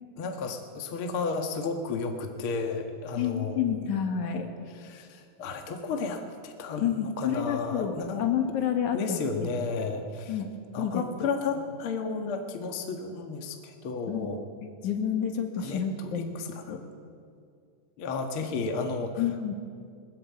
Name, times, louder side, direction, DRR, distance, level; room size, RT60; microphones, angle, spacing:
voice 1, 0.2-3.6 4.8-8.2 8.9-10.3 10.7-14.4 15.6-16.8 18.0-19.2, left 4 dB, 45° left, 4 dB, 2.2 m, -33 dB
voice 2, 3.1-4.5 6.8-9.5 10.3-10.5 10.8-11.0 14.1-14.3 14.6-16.8 19.2-19.5, left 8 dB, 65° left, 5 dB, 3.1 m, -29 dB
22.0 x 20.5 x 8.6 m, 2.3 s
omnidirectional pair, 3.8 m